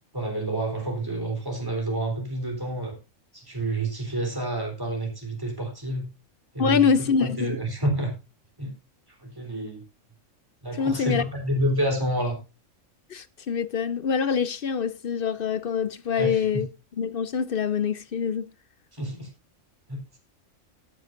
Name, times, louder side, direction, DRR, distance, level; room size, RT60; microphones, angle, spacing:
voice 1, 0.1-3.0 3.3-6.1 6.5-8.1 8.6-8.7 9.2-9.8 10.6-12.4 16.2-16.6 18.9-19.3 19.9-20.2, right 1 dB, 15° right, 3.5 m, -29 dB
voice 2, 6.6-7.6 10.8-11.2 13.1-16.7 17.0-18.4, left 6 dB, 55° left, 0.7 m, -25 dB
16.0 x 9.6 x 2.5 m
omnidirectional pair, 1.4 m